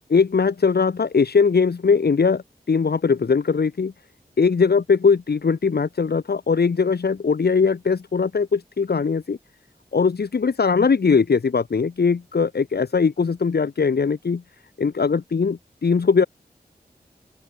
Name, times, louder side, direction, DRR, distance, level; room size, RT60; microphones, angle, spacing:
voice 1, 0.1-3.9 4.4-9.4 9.9-14.4 14.8-16.3, left 5 dB, 90° left, 5.4 m, -20 dB
open air
wide cardioid pair, 95°, 16 cm